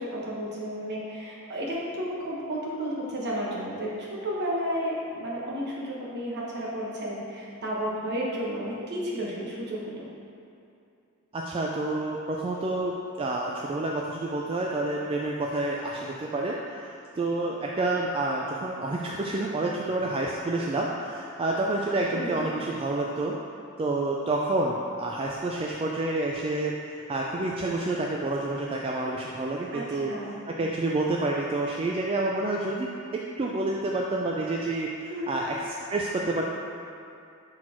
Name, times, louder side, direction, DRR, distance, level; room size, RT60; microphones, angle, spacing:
voice 1, 0.0-10.1 22.1-22.4 29.7-30.4 35.1-35.3, equal, 50° right, -5 dB, 1.2 m, -32 dB
voice 2, 11.3-12.9 13.2-16.6 17.2-23.3 23.8-26.7 27.1-30.1 30.5-35.6 35.9-36.5, right 2 dB, 25° right, -2 dB, 0.3 m, -28 dB
5.8 x 4.3 x 4.4 m, 2.6 s
head